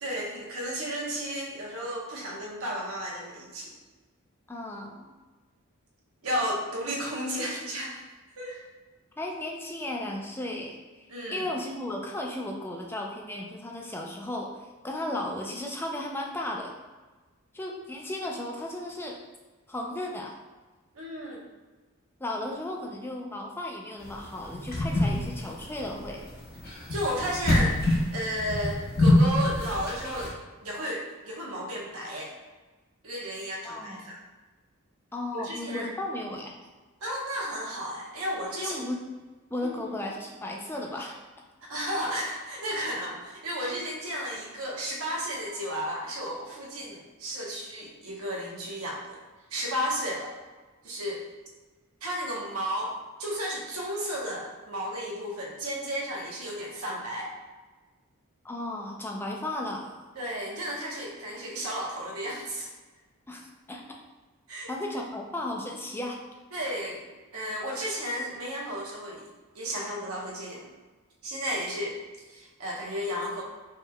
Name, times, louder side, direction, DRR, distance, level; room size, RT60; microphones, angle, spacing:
voice 1, 0.0-3.7 6.2-8.0 8.4-8.6 11.1-11.5 20.9-21.4 26.9-27.8 28.1-32.3 33.0-34.2 35.3-35.9 37.0-38.8 39.6-39.9 41.6-49.2 49.5-50.3 50.8-51.2 52.0-57.3 60.2-62.7 64.5-64.7 66.5-67.1 67.3-69.3 69.5-70.7 71.2-72.0 72.3-73.4, equal, 90° right, -3 dB, 1.0 m, -33 dB
voice 2, 4.5-5.1 9.2-16.7 17.5-19.2 19.7-20.3 22.2-26.3 33.6-34.1 35.1-36.5 38.6-39.0 39.5-41.2 58.4-60.0 63.3-63.8 64.7-66.2, left 1 dB, 10° left, 0 dB, 0.4 m, -35 dB
sound 1, 24.0-30.3, left 1 dB, 45° left, 0.8 m, -25 dB
4.6 x 3.2 x 2.3 m, 1.3 s
head